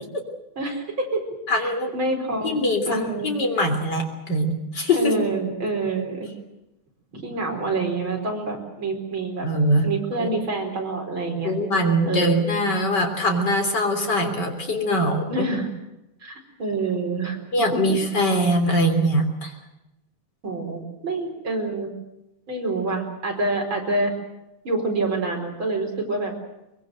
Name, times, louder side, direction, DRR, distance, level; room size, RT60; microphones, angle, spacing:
voice 1, 0.6-1.2 1.5-2.6 2.9-3.3 4.9-6.3 7.1-9.5 9.8-11.5 12.1-12.4 15.3-15.7 16.2-16.3 16.6-17.4 17.7-17.8 20.4-21.9 22.5-24.1 24.7-26.3, right 2 dB, 40° right, 1 dB, 5.4 m, -27 dB
voice 2, 1.5-1.9 2.4-5.1 9.4-9.9 10.2-10.3 11.4-15.5 17.5-19.5, equal, 35° left, 4 dB, 3.9 m, -22 dB
23.5 x 22.5 x 7.9 m, 0.91 s
omnidirectional pair, 3.5 m